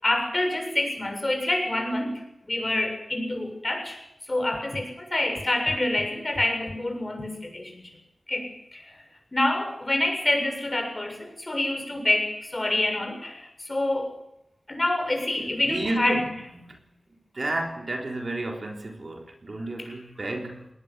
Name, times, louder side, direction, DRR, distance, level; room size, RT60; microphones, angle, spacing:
voice 1, 0.0-2.2 2.5-4.0 4.3-7.9 8.3-8.9 9.3-14.2 14.7-16.2 19.8-19.9, left 1 dB, 30° left, 7.4 m, -27 dB
voice 2, 15.6-16.8 17.3-20.7, right 2 dB, 50° right, 3.8 m, -32 dB
19.5 x 19.0 x 8.2 m
wide cardioid pair, 65°, 0 cm